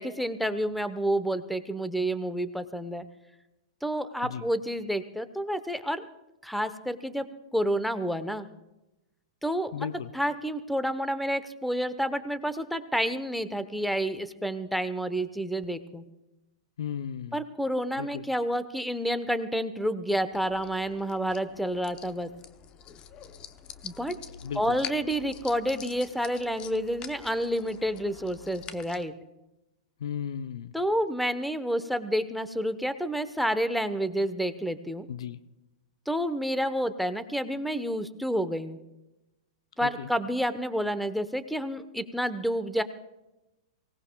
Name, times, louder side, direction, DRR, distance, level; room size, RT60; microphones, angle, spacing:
voice 1, 0.0-3.0 3.8-6.1 6.4-7.3 7.5-8.5 9.4-9.9 10.1-16.0 17.3-22.3 23.8-24.1 24.5-29.1 30.7-35.1 36.1-38.8 39.8-42.8, equal, ahead, 12 dB, 0.9 m, -29 dB
voice 2, 9.7-10.1 16.8-17.4 18.0-18.2 24.4-24.6 30.0-30.7 35.1-35.4 39.8-40.1, left 8 dB, 70° left, 13 dB, 0.6 m, -35 dB
sound 1, 20.3-29.0, left 9 dB, 35° left, 0.9 m, -45 dB
24.5 x 18.0 x 2.3 m, 0.98 s
hypercardioid pair, 105°, 3 cm